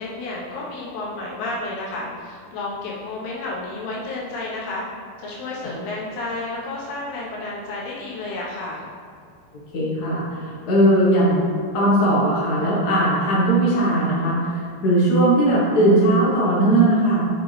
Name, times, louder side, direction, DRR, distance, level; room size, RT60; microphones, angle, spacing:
voice 1, 0.0-4.8 5.2-8.8, left 2 dB, 85° left, -5 dB, 3.4 m, -31 dB
voice 2, 9.7-11.4 11.7-17.2, right 1 dB, 60° left, -5 dB, 1.0 m, -18 dB
6.8 x 6.7 x 3.4 m, 2.2 s
omnidirectional pair, 4.4 m